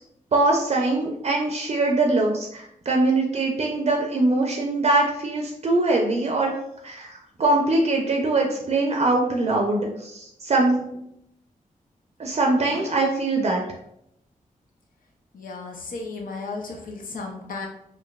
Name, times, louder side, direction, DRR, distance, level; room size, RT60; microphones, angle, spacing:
voice 1, 0.3-6.5 6.8-10.8 12.2-13.6, right 2 dB, 45° right, 0 dB, 0.5 m, -22 dB
voice 2, 15.3-17.7, left 3 dB, 75° left, 1 dB, 0.7 m, -35 dB
4.5 x 2.6 x 2.3 m, 0.77 s
wide cardioid pair, 85°, 14 cm